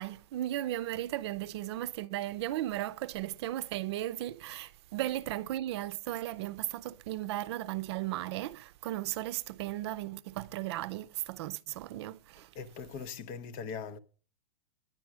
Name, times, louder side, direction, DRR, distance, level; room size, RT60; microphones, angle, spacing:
voice 1, 0.0-12.5, right 14 dB, 50° right, 0.6 m, -36 dB
voice 2, 12.6-14.0, left 6 dB, 35° left, 0.7 m, -40 dB
10.5 x 9.4 x 6.1 m
supercardioid pair, 155°, 17 cm